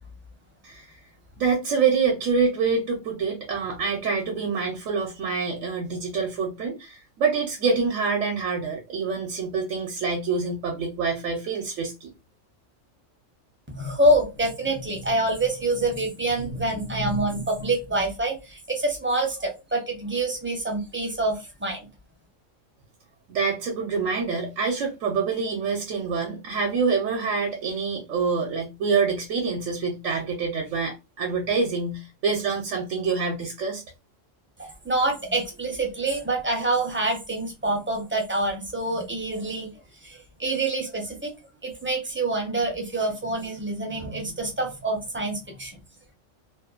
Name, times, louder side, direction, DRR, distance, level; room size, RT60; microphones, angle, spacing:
voice 1, 0.6-1.0 1.4-12.1 23.3-33.8, right 5 dB, 75° right, 1.0 m, -26 dB
voice 2, 13.7-21.9 34.6-39.7 40.0-41.3 41.6-45.7, right 2 dB, 15° right, 0.5 m, -26 dB
2.9 x 2.1 x 2.3 m
omnidirectional pair, 1.3 m